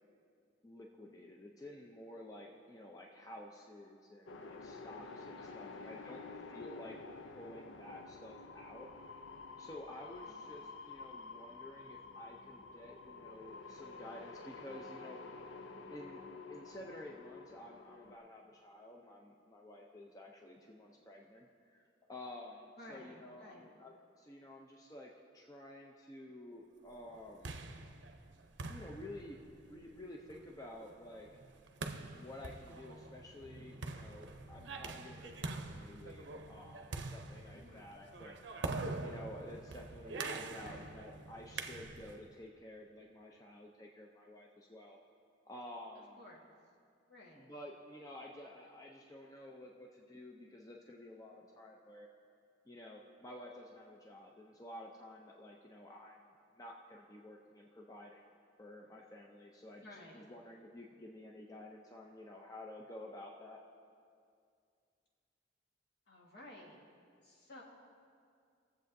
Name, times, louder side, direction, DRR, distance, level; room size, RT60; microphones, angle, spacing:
voice 1, 0.6-6.2 6.5-7.0 7.2-8.9 9.6-15.2 15.9-16.2 16.5-27.6 28.7-29.4 29.7-31.3 32.1-38.4 39.0-45.0 45.4-46.2 47.4-52.1 52.7-56.2 56.6-58.2 58.6-63.6, left 1 dB, 20° left, 0 dB, 0.5 m, -51 dB
sound 1, 4.3-18.2, left 4 dB, 85° left, 0.5 m, -50 dB
voice 2, 5.4-6.8 10.2-10.7 22.8-23.7 37.5-37.9 40.6-40.9 46.2-46.4 47.1-47.5 59.8-60.3 66.1-66.8 67.2-67.6, left 1 dB, 60° left, -3 dB, 1.6 m, -56 dB
sound 2, 27.1-42.3, right 3 dB, 70° right, 0.6 m, -45 dB
20.5 x 7.5 x 2.6 m, 2.3 s
head